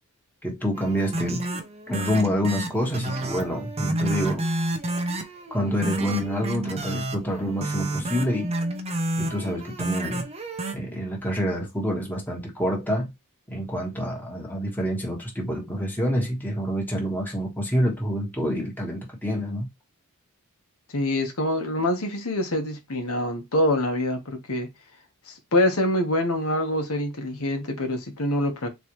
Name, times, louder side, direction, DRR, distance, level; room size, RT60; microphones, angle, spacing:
voice 1, 0.4-1.4 1.9-4.4 5.5-8.5 9.2-10.2 10.7-13.1 13.5-19.7, equal, 10° left, 1.3 m, -27 dB
sound 1, 0.8-10.7, right 1 dB, 30° right, 0.7 m, -30 dB
voice 2, 20.9-24.7 25.3-28.7, left 1 dB, 70° left, 1.1 m, -25 dB
4.0 x 3.3 x 3.0 m
head